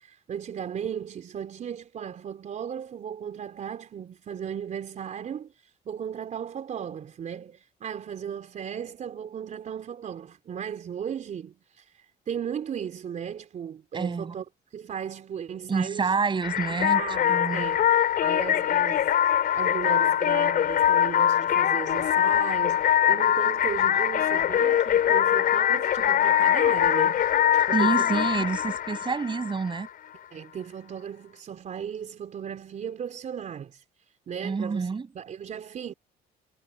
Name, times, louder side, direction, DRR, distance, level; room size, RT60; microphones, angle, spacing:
voice 1, 0.0-14.5 14.7-16.1 16.7-19.1 19.5-28.2 30.3-33.8 34.3-34.9 35.1-35.9, right 8 dB, 45° right, 4.0 m, -36 dB
voice 2, 13.9-14.3 15.7-17.0 17.3-17.6 27.7-29.9 34.4-35.1, right 5 dB, 30° right, 6.3 m, -27 dB
sound 1, 16.4-29.9, left 10 dB, 60° left, 4.8 m, -23 dB
cardioid pair, 110°, 17 cm